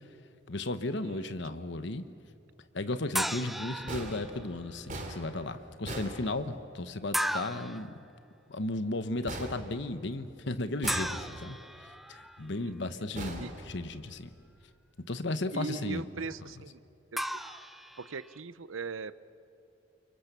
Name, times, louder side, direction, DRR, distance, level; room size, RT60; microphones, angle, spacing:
voice 1, 0.5-2.0 2.7-7.9 8.5-11.6 12.1-14.3 15.1-16.0 16.4-16.5, left 2 dB, 60° left, 10 dB, 1.2 m, -35 dB
voice 2, 1.0-1.3 12.4-12.7 13.4-13.5 15.5-16.8 17.1-17.4 18.0-19.2, right 5 dB, 80° right, 16 dB, 0.7 m, -40 dB
sound 1, 3.1-4.5 7.1-7.9 10.9-12.4 17.2-18.4, equal, ahead, 0.6 m, -35 dB
sound 2, 3.9-6.9 9.3-10.4 10.8-11.7 13.2-14.3, right 1 dB, 40° right, 3.0 m, -41 dB
29.5 x 24.0 x 6.9 m, 2.7 s
head